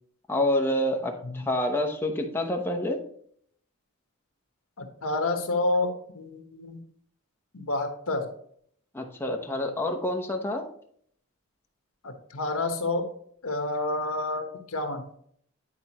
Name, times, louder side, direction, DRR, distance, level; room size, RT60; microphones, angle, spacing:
voice 1, 0.3-3.0 8.9-10.6, left 1 dB, 10° left, 2 dB, 0.9 m, -27 dB
voice 2, 4.8-6.8 7.5-8.3 12.0-13.1 13.4-15.1, left 2 dB, 75° left, 5 dB, 1.2 m, -29 dB
10.5 x 4.4 x 3.0 m, 0.63 s
head